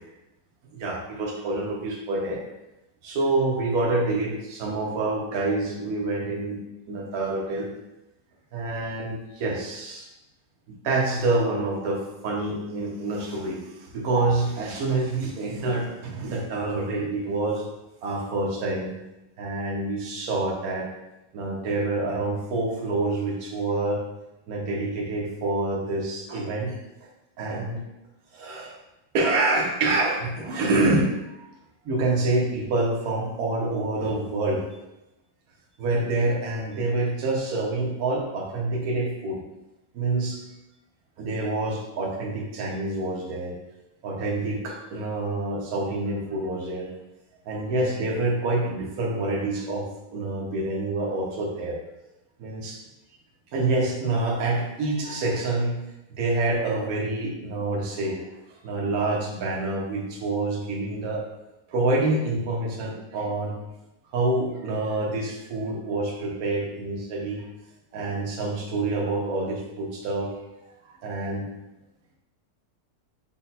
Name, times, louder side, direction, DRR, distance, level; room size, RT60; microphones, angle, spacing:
voice 1, 0.7-2.4 3.0-6.6 6.9-7.7 8.5-10.1 10.7-17.7 18.0-18.9 19.4-20.9 21.3-24.0 24.5-26.8 27.4-27.8 28.3-28.8 29.1-31.5 31.8-34.7 35.8-39.4 39.9-40.4 41.2-43.6 44.0-46.9 47.4-49.8 50.1-51.8 52.4-52.8 53.5-55.8 56.2-58.2 58.6-61.2 61.7-63.6 64.1-67.5 67.9-70.4 70.8-71.5, right 2 dB, 60° right, -2 dB, 1.3 m, -27 dB
5.5 x 2.2 x 4.0 m, 0.94 s
omnidirectional pair, 1.8 m